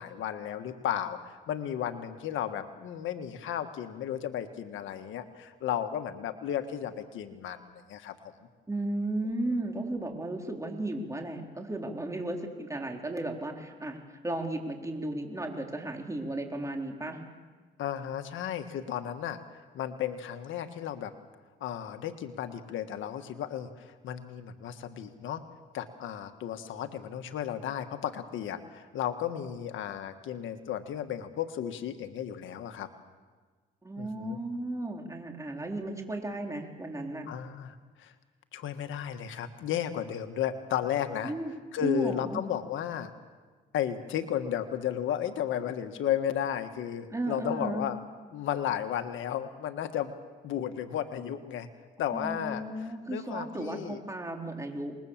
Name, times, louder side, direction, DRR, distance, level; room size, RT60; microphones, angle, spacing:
voice 1, 0.0-8.3 17.8-21.1 21.6-25.4 25.7-32.9 34.0-34.4 37.3-38.1 38.5-41.3 41.7-43.1 43.7-48.0 48.3-50.1 50.4-51.7 52.0-52.6 53.1-54.0, left 10 dB, 80° left, 8 dB, 1.5 m, -34 dB
voice 2, 8.7-17.2 33.8-37.3 41.2-41.5 41.8-42.4 47.1-47.8 52.1-55.0, right 1 dB, 15° right, 2 dB, 4.0 m, -34 dB
27.0 x 21.0 x 7.4 m, 1.4 s
cardioid pair, 90°, 20 cm